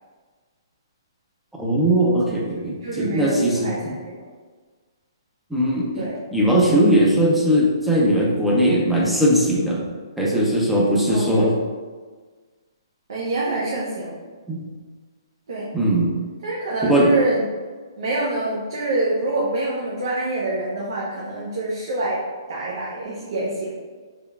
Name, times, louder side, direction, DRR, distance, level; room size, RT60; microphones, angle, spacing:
voice 1, 1.6-3.9 5.5-6.0 6.3-9.9 10.2-11.5 14.5-14.6 15.7-16.1 16.8-17.1, equal, ahead, -4 dB, 0.5 m, -19 dB
voice 2, 2.8-4.3 6.0-6.2 11.1-11.5 13.1-14.1 15.5-15.7 16.4-17.5 18.0-22.2 22.5-23.8, right 2 dB, 65° right, -5 dB, 0.8 m, -26 dB
4.1 x 3.5 x 2.3 m, 1.5 s
hypercardioid pair, 155°, 3 cm